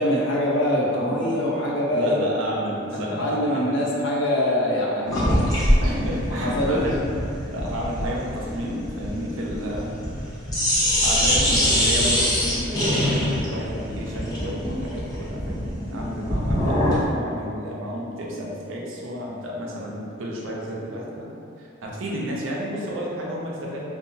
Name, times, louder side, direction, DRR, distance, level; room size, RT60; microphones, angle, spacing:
voice 1, 0.0-2.4 2.9-5.3 6.4-6.8 15.9-16.0, left 1 dB, 65° left, -4 dB, 0.5 m, -24 dB
voice 2, 1.1-1.4 1.9-3.8 5.8-7.0 7.5-10.1 11.0-21.3 21.6-23.9, equal, 90° right, -3 dB, 0.5 m, -31 dB
sound 1, 5.1-10.2 10.5-17.1, equal, 20° left, 0.5 m, -23 dB
2.7 x 2.3 x 2.6 m, 2.5 s
head